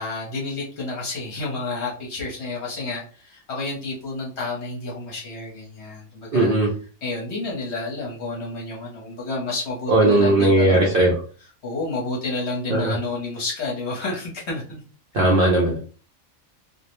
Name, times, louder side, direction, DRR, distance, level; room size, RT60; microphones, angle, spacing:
voice 1, 0.0-6.5 7.0-11.1 11.6-14.8, left 3 dB, 60° left, -3 dB, 1.0 m, -30 dB
voice 2, 6.3-6.7 9.9-11.1 12.7-12.9 15.1-15.8, right 2 dB, 65° right, -2 dB, 0.5 m, -17 dB
2.5 x 2.0 x 2.9 m, 0.39 s
omnidirectional pair, 1.5 m